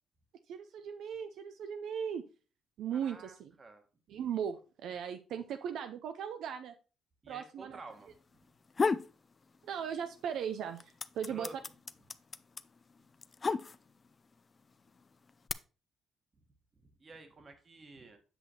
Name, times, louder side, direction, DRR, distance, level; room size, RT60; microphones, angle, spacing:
voice 1, 0.5-2.2 2.8-3.5 4.1-6.7 7.3-7.8 9.6-11.5, right 8 dB, 80° right, 8 dB, 0.5 m, -38 dB
voice 2, 2.9-3.8 4.1-4.2 7.2-8.1 11.3-11.6 16.8-18.2, right 3 dB, 35° right, 6 dB, 1.4 m, -51 dB
sound 1, 8.5-9.1 9.5-10.3 10.5-14.1 14.9-15.5, left 4 dB, 35° left, 0.4 m, -33 dB
7.8 x 6.2 x 2.9 m, 0.35 s
cardioid pair, 90°, 0 cm